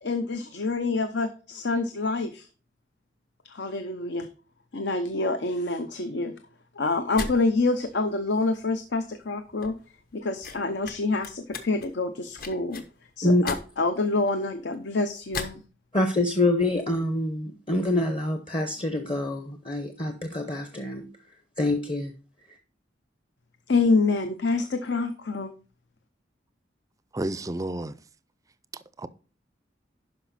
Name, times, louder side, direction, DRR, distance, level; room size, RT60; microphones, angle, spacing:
voice 1, 0.0-2.5 3.4-4.3 4.7-6.3 6.7-9.8 10.1-12.8 13.2-15.6 23.7-25.5, left 3 dB, 70° left, 0.7 m, -27 dB
sound 1, 7.0-15.6, left 4 dB, 50° left, 1.2 m, -40 dB
voice 2, 15.9-21.0 21.6-22.1, left 1 dB, 30° left, 0.9 m, -26 dB
voice 3, 27.1-27.9 29.0-29.1, right 1 dB, 20° right, 0.4 m, -30 dB
11.5 x 5.0 x 4.1 m
head